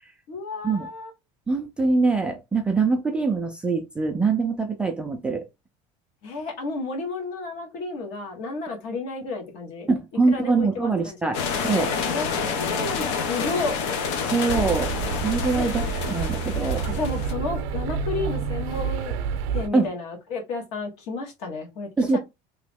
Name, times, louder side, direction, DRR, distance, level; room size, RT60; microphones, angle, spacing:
voice 1, 0.3-1.1 6.2-9.9 10.3-11.3 12.1-13.8 15.5-15.7 16.9-19.2 19.5-22.2, left 3 dB, 55° left, 1.4 m, -32 dB
voice 2, 1.5-5.4 9.9-11.9 14.2-16.9 19.7-19.9 22.0-22.2, right 4 dB, 5° right, 0.3 m, -24 dB
sound 1, 11.3-17.3, left 5 dB, 80° left, 0.9 m, -28 dB
sound 2, 14.5-19.7, right 6 dB, 75° right, 0.6 m, -28 dB
3.0 x 2.9 x 3.5 m
cardioid pair, 175°, 13 cm